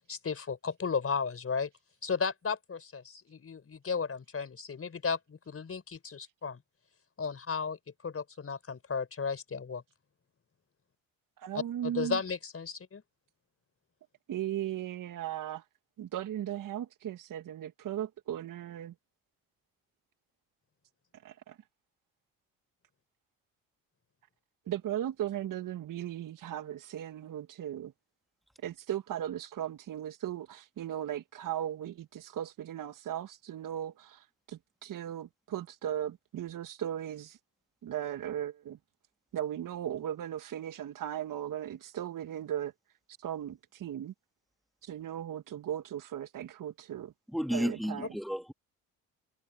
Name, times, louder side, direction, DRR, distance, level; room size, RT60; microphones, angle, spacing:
voice 1, 0.1-1.7 2.0-6.6 7.2-7.8 8.0-9.8 11.8-13.0, left 5 dB, 35° left, 4.9 m, -34 dB
voice 2, 11.4-12.2 14.3-15.6 16.0-18.9 21.2-21.6 24.7-27.9 28.6-37.4 37.8-38.8 39.3-42.7 43.2-44.1 44.8-47.1 47.5-48.1, right 11 dB, 55° right, 1.8 m, -37 dB
voice 3, 47.3-48.5, equal, ahead, 2.8 m, -32 dB
hypercardioid pair, 60°, 39 cm